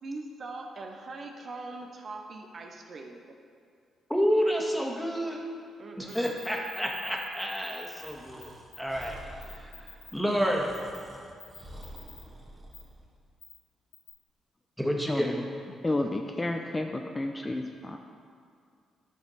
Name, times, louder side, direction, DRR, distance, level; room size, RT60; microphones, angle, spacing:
voice 1, 0.0-3.2 5.8-6.3, right 3 dB, 50° right, 2 dB, 0.7 m, -41 dB
voice 2, 4.1-5.4 6.0-8.5 8.8-9.2 9.5-10.7 14.8-15.3, equal, ahead, -1 dB, 1.6 m, -29 dB
sound 1, 6.1-8.1 8.4-8.5 8.7-9.1 9.4-10.1 10.7-11.0 11.4-12.2 12.7-12.8 13.4-13.5 13.9-14.1, left 5 dB, 80° left, 1.8 m, -47 dB
Breathing, 8.0-13.1, right 1 dB, 35° right, 1.6 m, -48 dB
voice 3, 15.1-15.4 15.8-18.0, left 2 dB, 25° left, 3 dB, 0.5 m, -31 dB
11.0 x 5.1 x 4.0 m, 2.3 s
hypercardioid pair, 40°, 0 cm